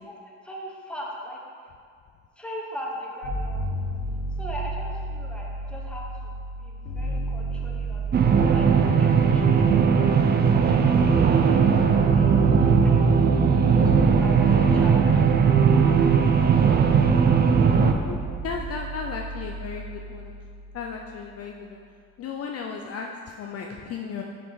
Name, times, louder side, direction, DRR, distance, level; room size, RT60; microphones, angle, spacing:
voice 1, 0.4-1.4 2.4-3.9 4.4-6.3 6.6-8.7 9.0-9.9 10.7-13.1 13.5-16.2 16.6-16.7, equal, 5° left, -3 dB, 1.2 m, -40 dB
sound 1, 3.2-21.2, right 1 dB, 80° left, 1.3 m, -32 dB
sound 2, 8.1-17.9, right 6 dB, 30° right, 0.4 m, -19 dB
voice 2, 17.8-18.2 18.4-20.3 20.7-21.8 22.2-24.2, left 5 dB, 45° left, 1 dB, 0.5 m, -35 dB
6.0 x 4.9 x 4.0 m, 2.2 s
supercardioid pair, 90°, 34 cm